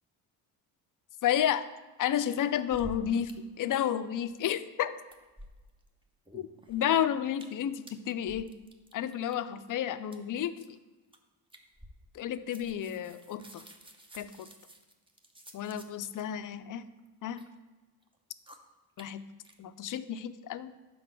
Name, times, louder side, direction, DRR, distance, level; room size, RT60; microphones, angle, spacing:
voice 1, 1.2-1.7 2.0-4.9 6.3-8.5 8.9-10.7 12.1-13.6 14.1-14.5 15.5-16.9 17.2-17.5 19.0-19.3 19.6-20.7, left 10 dB, 45° left, 12 dB, 0.4 m, -31 dB
sound 1, 2.6-3.3 3.6-3.7 4.0-4.7 5.0-5.9 6.3-6.9 7.3-7.6 7.9-9.4 10.1-10.2 10.6-10.8 11.1-11.2 11.5-12.2 12.5-16.2 17.0-17.5 18.0-18.2 18.5-18.6 19.0-19.1 19.4-19.5, equal, 10° right, 0.7 m, -51 dB
5.3 x 3.8 x 5.9 m, 1.2 s
supercardioid pair, 55°, 47 cm